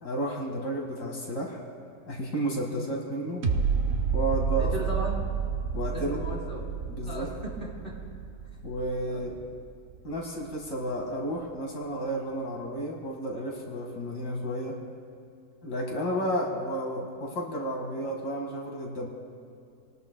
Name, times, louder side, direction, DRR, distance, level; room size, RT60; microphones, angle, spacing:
voice 1, 0.0-1.6 2.1-3.4 4.1-4.7 5.7-6.2 6.9-7.3 8.6-9.4 10.0-14.8 15.6-19.1, right 1 dB, 75° left, -1 dB, 2.5 m, -32 dB
sound 1, 3.4-10.5 10.9-11.0, right 6 dB, 50° right, 0.9 m, -30 dB
voice 2, 4.6-5.2 5.9-6.6 7.0-7.9 9.1-9.2 16.0-16.2, equal, 30° left, -4 dB, 3.8 m, -37 dB
28.5 x 19.0 x 2.2 m, 2.4 s
omnidirectional pair, 1.8 m